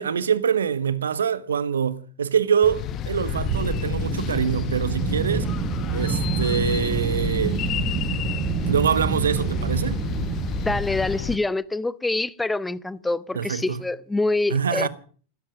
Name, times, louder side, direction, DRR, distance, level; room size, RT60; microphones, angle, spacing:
voice 1, 0.0-5.5 5.9-7.6 8.7-10.0 13.3-13.8 14.5-14.9, right 7 dB, 70° right, 1.3 m, -24 dB
sound 1, 2.6-11.4, left 10 dB, 35° left, 1.0 m, -30 dB
sound 2, 3.3-10.8, right 7 dB, 30° right, 1.3 m, -28 dB
voice 2, 10.6-14.9, left 2 dB, 5° left, 0.7 m, -25 dB
15.5 x 13.5 x 6.4 m
figure-of-eight pair, 90°, 0 cm